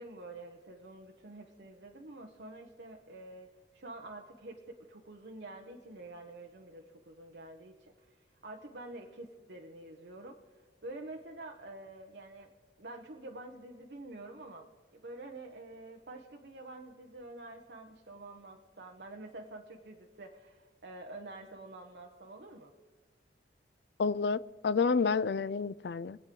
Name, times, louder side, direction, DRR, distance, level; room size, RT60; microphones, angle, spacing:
voice 1, 0.0-12.5 12.8-22.7, right 2 dB, 70° right, 1 dB, 1.0 m, -48 dB
voice 2, 24.0-26.2, left 5 dB, 65° left, 17 dB, 0.4 m, -29 dB
24.5 x 8.2 x 3.8 m, 1.4 s
head